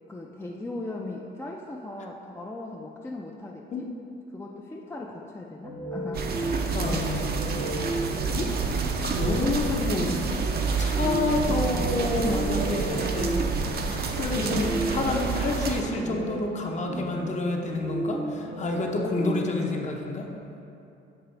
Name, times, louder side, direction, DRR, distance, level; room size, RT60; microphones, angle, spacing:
voice 1, 0.1-3.9 4.3-6.4 14.4-14.8, left 2 dB, 15° left, -1 dB, 0.4 m, -38 dB
sound 1, 5.6-19.4, right 1 dB, 80° right, 1.2 m, -34 dB
sound 2, 6.1-15.8, right 4 dB, 50° right, 0.6 m, -28 dB
voice 2, 6.7-7.5 7.7-8.0 8.3-8.5 9.0-10.2 10.8-13.3 13.7-20.3, left 3 dB, 35° left, 1 dB, 0.7 m, -29 dB
6.8 x 3.3 x 4.5 m, 2.8 s
cardioid pair, 90°, 20 cm